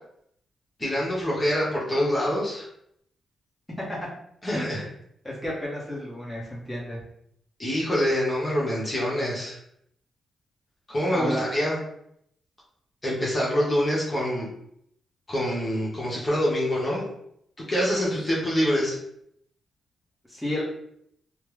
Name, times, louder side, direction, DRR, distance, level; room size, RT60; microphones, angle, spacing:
voice 1, 0.8-2.7 4.4-4.8 7.6-9.6 10.9-11.8 13.0-14.5 15.3-17.0 17.7-19.0, equal, 25° left, -6 dB, 1.0 m, -25 dB
voice 2, 4.5-4.9 5.2-7.0 11.1-11.5 20.3-20.6, left 1 dB, ahead, -6 dB, 1.0 m, -32 dB
3.2 x 2.0 x 3.2 m, 0.72 s
cardioid pair, 105°, 0 cm